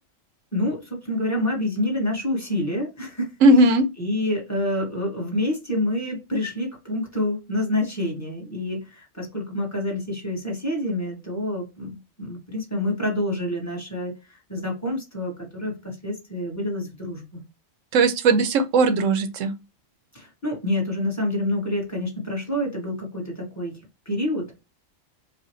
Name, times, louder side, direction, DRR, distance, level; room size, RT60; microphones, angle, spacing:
voice 1, 0.5-3.3 4.0-17.4 20.1-24.6, left 1 dB, 15° left, 1.7 m, -27 dB
voice 2, 3.4-3.8 17.9-19.5, right 2 dB, 85° right, 1.0 m, -17 dB
4.9 x 2.4 x 3.0 m
omnidirectional pair, 1.3 m